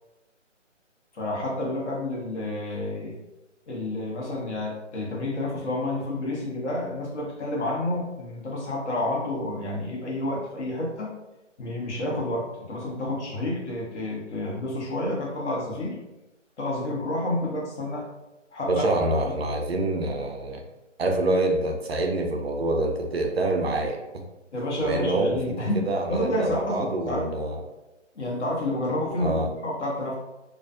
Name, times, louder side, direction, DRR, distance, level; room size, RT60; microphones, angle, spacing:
voice 1, 1.1-3.2 3.7-11.1 11.6-16.0 16.6-18.1 18.5-19.3 24.5-27.3 28.1-30.2, left 1 dB, 65° left, -3 dB, 1.0 m, -29 dB
voice 2, 18.7-20.6 21.0-24.0 24.8-27.6 29.2-29.5, right 2 dB, 55° right, 2 dB, 0.5 m, -26 dB
2.4 x 2.4 x 2.4 m, 1.0 s
figure-of-eight pair, 160°, 37 cm